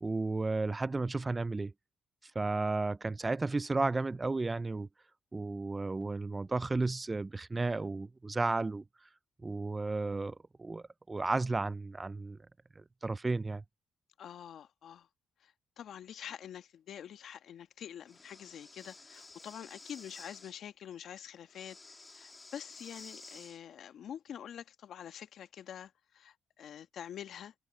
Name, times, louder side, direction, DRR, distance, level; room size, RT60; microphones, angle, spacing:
voice 1, 0.0-1.7 2.4-4.9 5.3-8.8 9.4-12.4 12.8-13.6, right 3 dB, 20° right, 0.4 m, -33 dB
voice 2, 14.2-15.1 15.4-27.5, left 9 dB, 65° left, 1.4 m, -46 dB
Breathing, 18.1-20.5 21.5-23.6, left 3 dB, 25° left, 2.4 m, -52 dB
cardioid pair, 90°, 0 cm